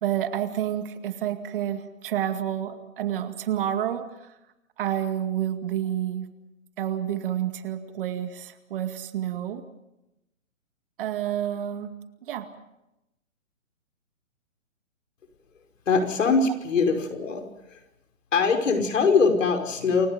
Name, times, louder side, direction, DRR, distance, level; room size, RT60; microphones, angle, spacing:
voice 1, 0.0-4.4 4.8-6.3 6.8-9.6 11.0-11.9 12.2-12.5, right 11 dB, 40° right, 8 dB, 2.2 m, -29 dB
voice 2, 15.9-17.8 18.3-20.1, left 4 dB, 70° left, 5 dB, 5.6 m, -22 dB
28.5 x 24.0 x 5.2 m, 0.90 s
hypercardioid pair, 145°, 40 cm